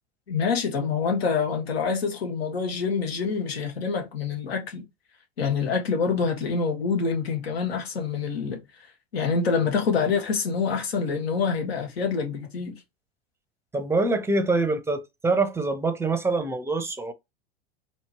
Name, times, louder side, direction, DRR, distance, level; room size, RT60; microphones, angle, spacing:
voice 1, 0.3-4.8 5.4-8.9 9.1-12.8, left 5 dB, 75° left, 1.7 m, -26 dB
voice 2, 13.7-17.1, right 3 dB, 10° right, 0.7 m, -25 dB
4.4 x 3.0 x 2.9 m
figure-of-eight pair, 85°, 31 cm